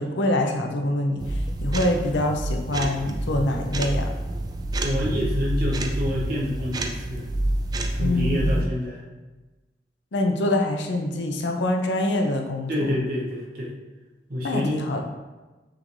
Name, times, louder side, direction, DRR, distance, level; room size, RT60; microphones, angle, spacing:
voice 1, 0.0-4.1 8.0-8.7 10.1-12.9 14.4-15.0, left 1 dB, 85° left, 3 dB, 0.6 m, -25 dB
sound 1, 1.2-8.6, right 1 dB, 20° right, 0.3 m, -28 dB
voice 2, 4.8-7.2 7.9-9.0 12.7-13.7 14.3-14.8, left 1 dB, 55° right, -4 dB, 1.1 m, -27 dB
5.8 x 3.2 x 2.6 m, 1.2 s
head